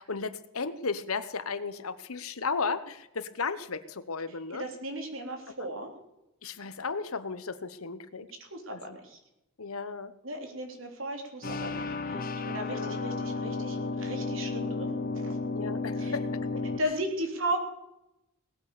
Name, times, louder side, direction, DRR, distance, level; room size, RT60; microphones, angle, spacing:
voice 1, 0.0-4.6 5.6-5.7 6.4-8.3 8.7-9.0 9.6-10.1 12.6-13.0 15.6-16.2, left 4 dB, 75° left, 13 dB, 1.1 m, -34 dB
voice 2, 4.5-5.9 8.4-9.2 10.2-15.4 16.0-16.1 16.8-17.6, right 1 dB, 60° right, 3 dB, 3.4 m, -36 dB
sound 1, 11.4-16.8, left 3 dB, 40° left, 0.7 m, -33 dB
19.0 x 8.7 x 6.7 m, 0.88 s
head